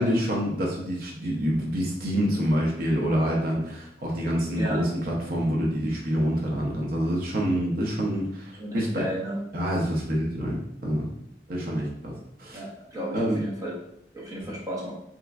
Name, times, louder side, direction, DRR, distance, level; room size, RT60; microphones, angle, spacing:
voice 1, 0.0-9.0 9.5-11.1 11.5-12.1 12.4-12.6 13.1-13.4 14.4-14.5, equal, 55° right, -2 dB, 0.7 m, -27 dB
voice 2, 8.6-9.4 12.5-13.7 14.1-14.9, equal, 20° right, -4 dB, 0.8 m, -33 dB
3.3 x 2.9 x 2.4 m, 0.75 s
head